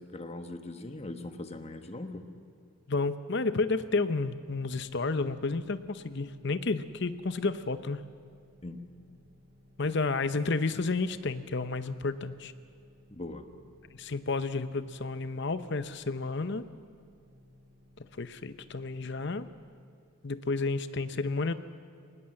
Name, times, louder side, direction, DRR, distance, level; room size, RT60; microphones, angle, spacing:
voice 1, 0.1-2.3 8.6-8.8 13.1-13.4, left 2 dB, 30° left, 7 dB, 1.2 m, -40 dB
voice 2, 2.9-8.0 9.8-12.5 13.9-16.7 18.2-19.5 20.2-21.5, left 3 dB, 55° left, 12 dB, 0.8 m, -31 dB
sound 1, 4.1-19.6, left 1 dB, 35° right, 4.4 m, -60 dB
20.5 x 19.5 x 7.7 m, 2.2 s
head